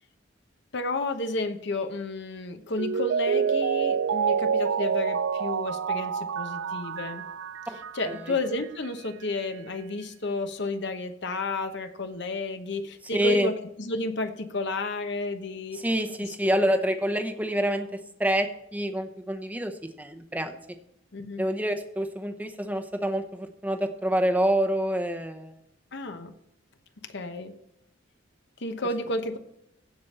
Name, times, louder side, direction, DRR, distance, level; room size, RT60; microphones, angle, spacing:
voice 1, 0.7-7.3 7.9-15.8 16.2-16.8 21.1-21.4 25.9-26.3 27.0-27.5 28.6-29.4, left 2 dB, 60° left, 8 dB, 1.0 m, -32 dB
Mallet percussion, 2.8-8.3 8.6-8.7, right 6 dB, 70° right, 0.3 m, -27 dB
voice 2, 13.1-13.5 15.7-20.6 21.4-25.6, equal, 10° right, 6 dB, 0.9 m, -27 dB
15.5 x 5.3 x 4.3 m, 0.78 s
head